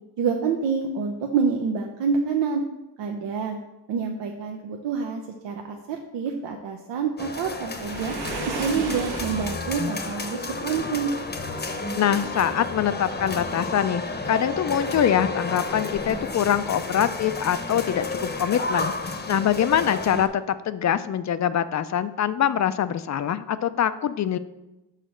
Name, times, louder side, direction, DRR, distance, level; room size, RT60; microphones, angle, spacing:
voice 1, 0.2-2.6 3.0-3.6 3.9-8.1 8.5-11.1, right 5 dB, 85° right, 3 dB, 0.7 m, -27 dB
sound 1, 7.2-20.3, left 3 dB, 25° left, 0.8 m, -31 dB
Waves surf, 7.7-9.8, right 4 dB, 65° right, 1.1 m, -34 dB
voice 2, 11.9-18.9 19.3-24.4, left 9 dB, 45° left, 14 dB, 0.4 m, -24 dB
6.6 x 3.9 x 6.4 m, 1.0 s
cardioid pair, 95°, 42 cm